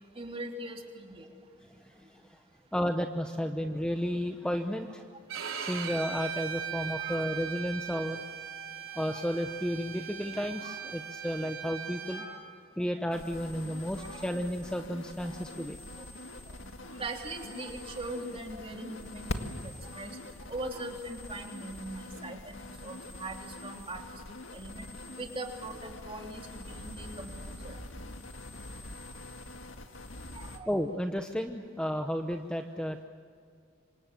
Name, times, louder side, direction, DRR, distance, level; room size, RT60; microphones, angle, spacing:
voice 1, 0.1-1.3 6.6-7.3 8.9-9.5 10.6-10.8 12.0-12.4 14.0-14.3 15.2-15.4 16.5-16.7 17.0-20.2 20.5-24.2 24.5-24.8 25.2-27.8 30.3-30.7, right 2 dB, 30° right, 2 dB, 3.2 m, -41 dB
voice 2, 1.7-2.4 2.7-5.1 5.6-8.2 9.0-12.2 12.8-15.8 30.7-33.0, equal, 5° left, 5 dB, 0.9 m, -33 dB
Bowed string instrument, 5.3-12.3, right 8 dB, 85° right, 3.8 m, -39 dB
sound 1, 13.1-30.6, left 2 dB, 70° left, 1.8 m, -44 dB
27.0 x 25.5 x 7.6 m, 2.3 s
head